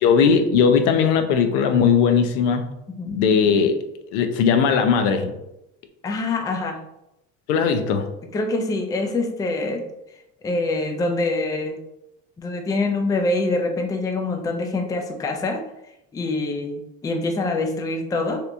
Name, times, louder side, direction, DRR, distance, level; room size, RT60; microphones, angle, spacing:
voice 1, 0.0-2.7 3.1-3.8 4.1-5.3 7.5-8.1, left 6 dB, 90° left, 7 dB, 0.6 m, -18 dB
voice 2, 6.0-6.8 8.3-9.8 10.4-11.8 12.4-15.6 16.1-18.4, left 2 dB, 10° left, 3 dB, 0.3 m, -25 dB
3.3 x 2.9 x 2.5 m, 0.84 s
supercardioid pair, 110°, 35 cm